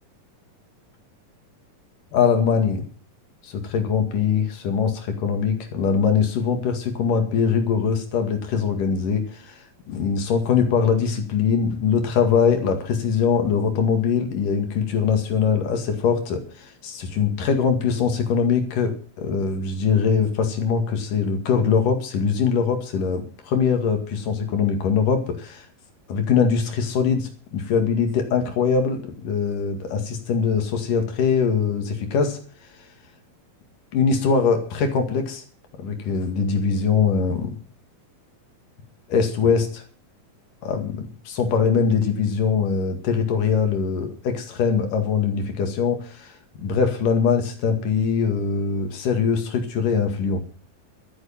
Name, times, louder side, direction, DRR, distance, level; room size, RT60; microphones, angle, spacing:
voice 1, 2.1-2.8 3.4-25.7 26.1-32.4 33.9-35.4 35.8-37.5 39.1-39.8 40.6-50.4, left 6 dB, 65° left, 6 dB, 3.6 m, -22 dB
13.0 x 9.6 x 7.2 m, 0.42 s
omnidirectional pair, 4.1 m